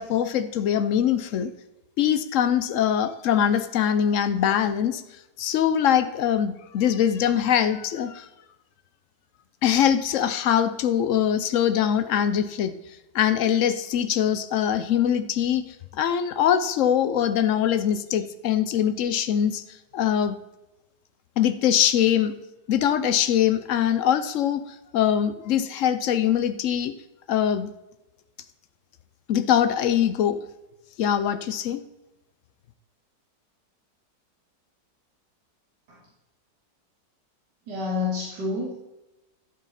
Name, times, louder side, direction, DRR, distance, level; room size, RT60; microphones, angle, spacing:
voice 1, 0.0-1.5 2.0-5.0 5.4-8.3 9.6-12.7 13.1-15.6 15.9-19.6 19.9-20.4 21.4-22.3 22.7-26.9 27.3-27.7 29.3-30.4 31.0-31.8, left 9 dB, 70° left, 12 dB, 0.7 m, -22 dB
voice 2, 37.7-38.7, left 3 dB, 70° right, -5 dB, 2.6 m, -28 dB
13.0 x 7.6 x 4.2 m, 0.98 s
omnidirectional pair, 1.9 m